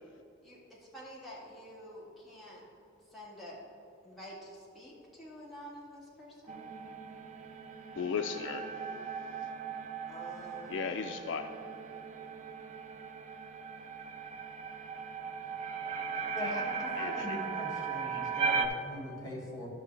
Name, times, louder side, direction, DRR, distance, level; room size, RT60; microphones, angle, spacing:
voice 1, 0.4-2.6 3.1-3.6 4.0-6.6 10.1-10.9, equal, ahead, 1.9 m, -49 dB
sound 1, 6.5-18.7, right 5 dB, 35° right, 0.4 m, -38 dB
voice 2, 8.0-8.7 10.7-11.5 17.0-17.4 18.1-18.2, left 6 dB, 60° left, 0.3 m, -36 dB
voice 3, 16.3-19.7, equal, 20° left, 1.5 m, -40 dB
12.0 x 6.2 x 3.2 m
head